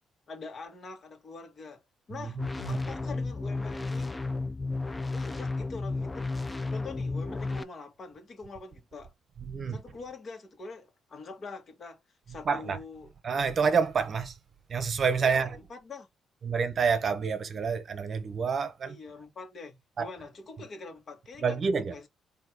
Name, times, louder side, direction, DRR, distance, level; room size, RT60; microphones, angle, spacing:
voice 1, 0.3-1.8 2.1-2.4 2.7-4.2 5.1-6.3 6.7-9.1 9.7-12.0 12.3-13.1 15.2-16.1 18.8-22.1, left 3 dB, 45° left, 1.5 m, -44 dB
voice 2, 2.2-2.8 9.5-9.8 12.5-12.8 13.2-14.3 14.7-15.6 16.4-19.0 20.0-20.1 21.4-21.9, right 5 dB, 50° right, 0.8 m, -28 dB
sound 1, 2.4-7.6, left 3 dB, 15° left, 0.5 m, -33 dB
4.1 x 2.8 x 4.6 m
cardioid pair, 90°, 0 cm